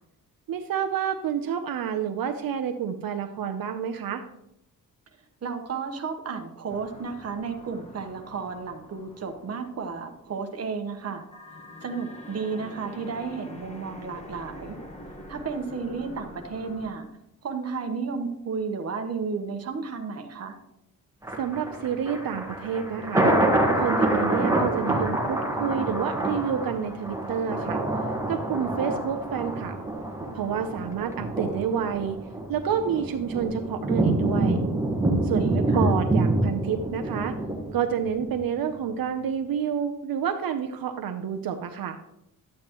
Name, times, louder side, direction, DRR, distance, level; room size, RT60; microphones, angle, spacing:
voice 1, 0.5-4.2 21.4-23.3 23.8-27.8 28.3-29.8 30.3-32.2 32.5-34.6 35.2-37.3 37.7-42.0, right 8 dB, 75° right, 6 dB, 0.7 m, -29 dB
voice 2, 5.4-11.2 11.8-14.8 15.3-17.1 17.4-20.6 35.3-35.9, right 5 dB, 45° right, 5 dB, 1.1 m, -33 dB
sound 1, 6.7-11.0 11.3-16.9, equal, 20° left, 1.2 m, -45 dB
Thunder, 21.2-38.3 38.7-38.8, right 2 dB, 10° right, 1.5 m, -26 dB
11.5 x 8.6 x 3.0 m, 0.82 s
wide cardioid pair, 165°, 35 cm